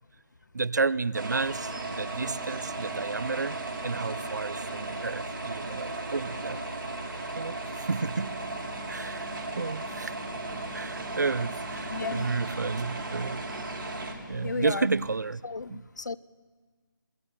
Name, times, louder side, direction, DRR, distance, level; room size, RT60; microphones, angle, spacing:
voice 1, 0.5-3.6 3.8-6.6 7.4-8.3 8.9-10.1 10.7-13.4 14.3-15.4 15.7-15.8, right 4 dB, 55° right, 0.6 m, -31 dB
sound 1, 1.1-14.1, right 2 dB, 75° right, 4.4 m, -36 dB
sound 2, 8.1-15.2, left 4 dB, ahead, 0.9 m, -49 dB
voice 2, 11.9-12.4 14.4-14.9 15.4-16.2, left 4 dB, 55° left, 0.7 m, -34 dB
27.0 x 19.0 x 5.5 m
figure-of-eight pair, 175°, 11 cm